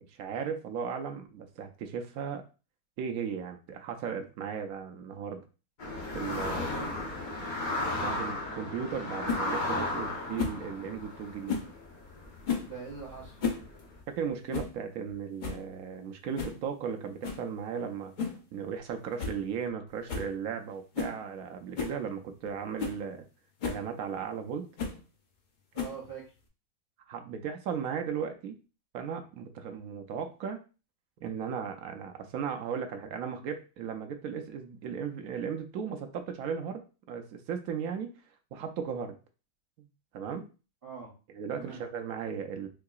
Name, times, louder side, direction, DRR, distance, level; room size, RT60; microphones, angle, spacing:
voice 1, 0.0-2.4 3.0-5.4 6.1-6.7 7.8-11.6 14.1-18.1 18.5-23.3 23.6-24.7 27.1-28.6 28.9-30.6 31.2-38.1 38.5-39.2 39.8-39.9 40.1-40.5 41.3-42.7, right 7 dB, 70° right, 5 dB, 1.0 m, -36 dB
sound 1, 5.8-13.9, left 2 dB, 40° left, 0.8 m, -35 dB
sound 2, 9.3-9.4 10.4-10.6 11.5-11.7 12.4-12.7 13.2-13.7 13.9-14.0 14.5-14.8 15.1-15.2 15.4-15.7 16.4-16.6 17.2-17.5 18.2-18.4 18.8-18.9 19.2-19.4 19.7-19.8 20.1-20.3 20.9-21.2 21.8-22.0 22.5-22.6 22.8-23.0 23.6-23.8 24.8-25.0 25.8-26.1, left 5 dB, 65° left, 0.4 m, -33 dB
voice 2, 12.6-13.4 25.7-26.3 40.8-41.1 41.6-41.8, right 6 dB, 45° right, -6 dB, 1.0 m, -43 dB
4.5 x 2.7 x 2.3 m, 0.33 s
omnidirectional pair, 1.7 m